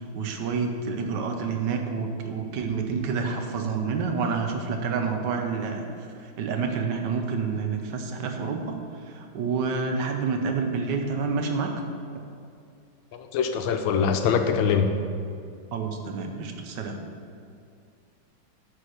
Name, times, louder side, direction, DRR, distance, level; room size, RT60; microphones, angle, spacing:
voice 1, 0.0-5.8 6.2-8.8 9.1-11.7 12.1-12.2 13.6-13.7 15.7-17.0, right 5 dB, 65° right, 4 dB, 1.3 m, -28 dB
voice 2, 13.1-14.9, left 6 dB, 75° left, 6 dB, 1.3 m, -23 dB
9.5 x 4.3 x 6.4 m, 2.4 s
omnidirectional pair, 2.2 m